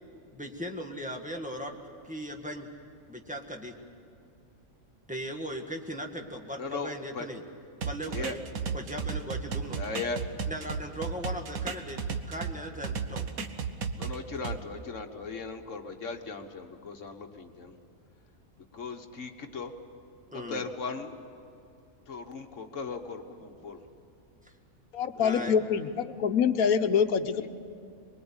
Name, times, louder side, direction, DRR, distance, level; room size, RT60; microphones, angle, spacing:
voice 1, 0.3-1.8 2.0-2.7 3.1-3.7 5.1-7.4 7.8-8.4 8.7-9.8 10.5-13.3 20.3-20.6 25.2-25.5, equal, 5° right, 2 dB, 1.9 m, -38 dB
voice 2, 6.6-7.3 8.1-8.4 9.7-10.2 14.0-17.7 18.7-19.7 20.3-21.1 22.1-23.8 25.2-25.5 27.4-27.5, left 4 dB, 60° left, 6 dB, 1.7 m, -38 dB
sound 1, 7.8-12.5 12.8-14.6, right 6 dB, 80° right, 1.6 m, -34 dB
voice 3, 24.9-27.5, left 7 dB, 80° left, 10 dB, 1.4 m, -25 dB
24.0 x 22.0 x 8.8 m, 2.5 s
omnidirectional pair, 1.5 m